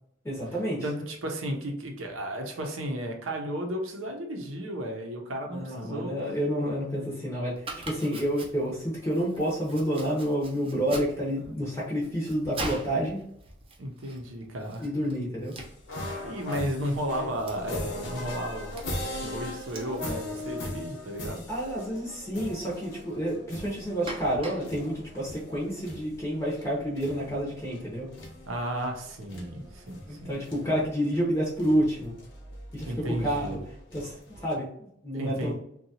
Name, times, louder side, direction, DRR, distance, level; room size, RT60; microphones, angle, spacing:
voice 1, 0.2-0.9 5.5-13.2 14.8-15.5 21.5-28.1 30.1-32.2 32.7-33.6 33.9-35.5, equal, 15° left, -6 dB, 0.6 m, -29 dB
voice 2, 0.8-6.1 13.8-14.8 16.2-18.8 19.1-21.4 28.5-30.3 32.9-33.6 35.1-35.5, equal, 85° right, 3 dB, 0.7 m, -33 dB
Domestic sounds home sounds, 7.6-26.0, right 2 dB, 30° right, 0.5 m, -45 dB
sound 1, 15.6-34.6, left 2 dB, 65° left, 0.8 m, -40 dB
2.7 x 2.2 x 2.8 m, 0.73 s
head